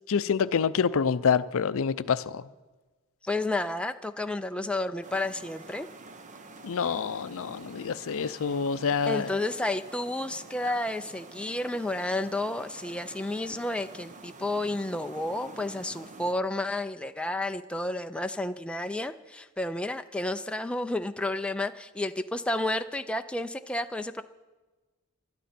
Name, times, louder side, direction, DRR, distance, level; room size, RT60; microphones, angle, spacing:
voice 1, 0.1-2.4 6.6-9.3, left 6 dB, 65° left, 0.5 m, -27 dB
voice 2, 3.2-5.9 9.1-24.2, left 2 dB, 5° left, 0.4 m, -31 dB
sound 1, 5.0-16.3, right 3 dB, 35° right, 0.8 m, -47 dB
21.0 x 12.5 x 4.3 m
head